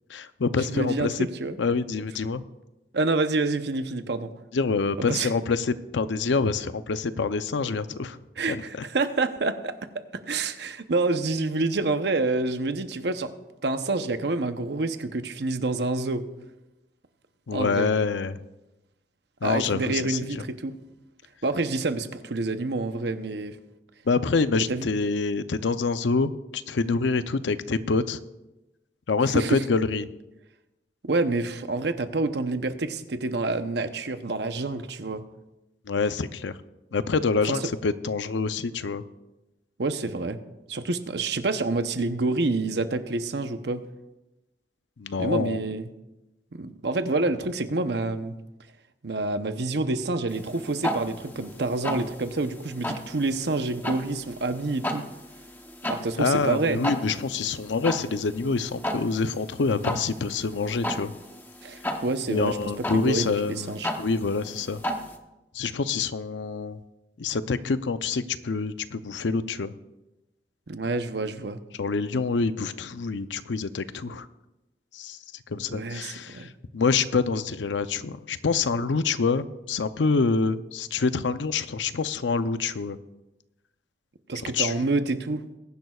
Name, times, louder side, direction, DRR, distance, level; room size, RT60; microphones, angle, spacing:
voice 1, 0.1-1.3 1.6-2.4 4.5-8.2 8.5-8.6 17.5-18.4 19.4-20.4 24.1-28.2 29.1-30.1 35.9-36.6 36.9-39.0 45.0-45.6 56.2-61.1 62.3-64.8 65.5-66.8 67.2-69.7 71.8-74.3 74.9-75.2 75.5-83.0 84.5-84.7, left 4 dB, 85° left, 12 dB, 0.6 m, -26 dB
voice 2, 0.7-1.6 2.9-4.3 5.0-5.3 8.4-13.3 13.6-16.2 17.5-17.9 19.4-20.7 21.4-23.6 24.7-24.9 29.3-29.6 31.0-35.2 37.5-37.6 39.8-40.4 40.7-43.8 45.2-45.9 46.5-48.3 49.0-55.0 55.9-56.8 61.6-62.6 62.9-63.9 70.7-71.6 75.7-76.5 84.3-85.4, right 3 dB, 70° right, 9 dB, 0.8 m, -27 dB
sound 1, 50.3-65.2, left 1 dB, 10° left, 0.8 m, -35 dB
21.0 x 10.5 x 2.4 m, 1.0 s
head